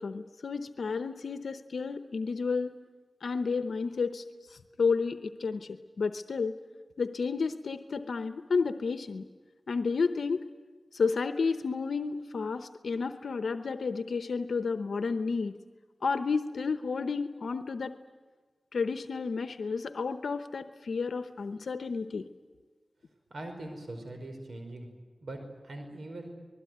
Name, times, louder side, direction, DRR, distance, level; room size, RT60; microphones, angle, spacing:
voice 1, 0.0-2.7 3.2-4.2 4.5-6.5 7.0-9.3 9.7-10.4 10.9-15.5 16.0-17.9 18.7-22.3, left 4 dB, 90° left, 9 dB, 0.9 m, -31 dB
voice 2, 23.3-24.9 25.2-25.4 25.6-26.3, right 1 dB, 80° right, 5 dB, 5.0 m, -41 dB
26.0 x 20.5 x 9.4 m, 1.4 s
wide cardioid pair, 65°, 0 cm